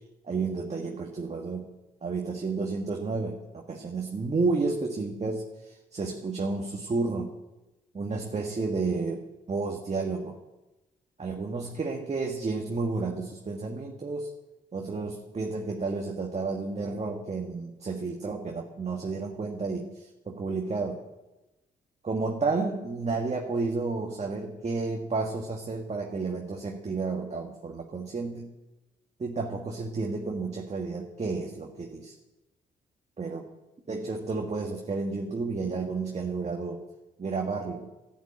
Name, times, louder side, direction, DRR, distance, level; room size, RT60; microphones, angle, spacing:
voice 1, 0.2-1.7 2.0-7.4 7.9-9.2 9.5-10.4 11.2-14.4 14.7-21.0 22.0-28.5 29.2-32.1 33.2-33.5 33.9-36.9 37.2-37.9, right 3 dB, 35° right, 1 dB, 1.7 m, -31 dB
11.5 x 8.4 x 8.6 m, 1.0 s
hypercardioid pair, 50°, 19 cm